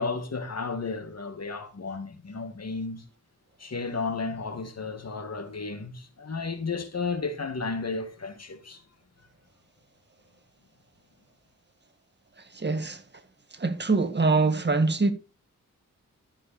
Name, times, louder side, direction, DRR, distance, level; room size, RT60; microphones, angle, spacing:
voice 1, 0.0-3.0 3.6-8.8, left 4 dB, 50° left, 2.2 m, -33 dB
voice 2, 12.5-13.0 13.6-15.1, right 3 dB, 35° right, 1.9 m, -24 dB
13.0 x 7.3 x 4.3 m
cardioid pair, 65°, 32 cm